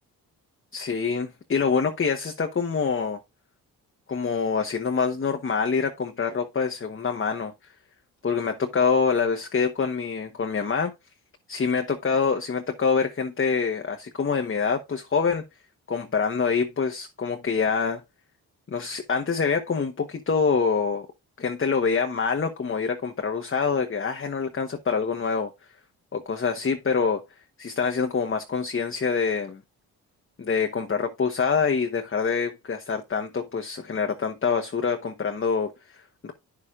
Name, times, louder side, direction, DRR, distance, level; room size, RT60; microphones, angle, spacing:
voice 1, 0.7-3.2 4.1-7.5 8.2-10.9 11.5-15.4 15.9-18.0 18.7-21.1 21.4-25.5 26.1-27.2 27.6-29.6 30.4-36.3, left 5 dB, 30° left, 1.0 m, -25 dB
9.4 x 6.7 x 2.4 m
hypercardioid pair, 45°, 42 cm